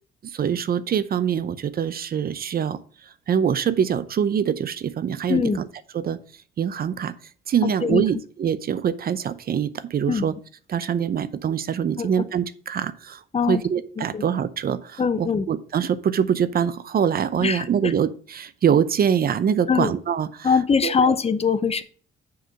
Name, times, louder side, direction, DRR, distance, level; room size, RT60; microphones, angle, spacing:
voice 1, 0.2-5.7 5.9-6.2 6.6-7.1 7.5-10.3 10.7-13.2 13.5-20.5 20.8-21.2, right 8 dB, 50° right, 15 dB, 0.6 m, -24 dB
voice 2, 7.6-8.0 10.1-10.2 12.0-12.1 13.3-13.6 14.0-14.2 15.0-15.4 17.4-17.9 19.7-19.9 20.4-21.8, left 6 dB, 30° left, 13 dB, 0.7 m, -22 dB
6.3 x 4.8 x 6.4 m, 0.42 s
cardioid pair, 90°, 20 cm